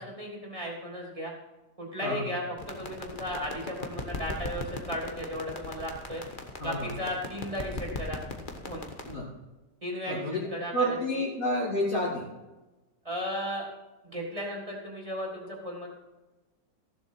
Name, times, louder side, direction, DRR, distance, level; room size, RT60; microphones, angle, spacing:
voice 1, 0.0-1.3 1.8-6.2 6.6-8.2 8.7-8.9 9.8-10.2 10.5-11.2 13.0-13.6 14.0-15.9, equal, 20° right, -2 dB, 3.2 m, -35 dB
sound 1, 2.6-9.2, left 2 dB, 30° left, 1.3 m, -39 dB
voice 2, 6.6-6.9 9.0-9.2 10.1-10.5 10.7-12.2, equal, 50° left, -6 dB, 2.8 m, -29 dB
15.0 x 7.3 x 5.9 m, 1.1 s
omnidirectional pair, 1.9 m